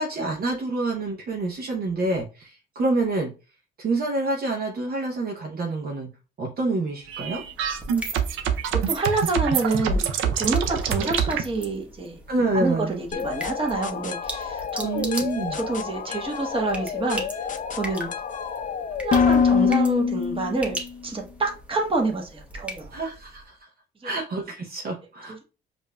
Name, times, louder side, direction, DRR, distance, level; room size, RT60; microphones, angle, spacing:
voice 1, 0.0-3.3 3.8-6.1 6.4-7.4 11.0-11.1 12.3-13.0 14.8-15.6 22.9-23.7 24.0-25.4, right 2 dB, 50° right, 0 dB, 0.8 m, -27 dB
sound 1, 7.0-23.5, equal, 5° right, 1.0 m, -40 dB
sound 2, 7.1-11.4, right 7 dB, 85° right, 0.5 m, -25 dB
voice 2, 8.7-12.2 12.5-15.1 15.5-17.3 17.7-18.1 18.9-20.8 21.0-22.9 24.0-24.1, right 3 dB, 25° right, 1 dB, 1.1 m, -27 dB
sound 3, 13.1-20.9, left 6 dB, 40° left, 0.5 m, -26 dB
5.1 x 2.5 x 2.2 m, 0.32 s
cardioid pair, 90°, 20 cm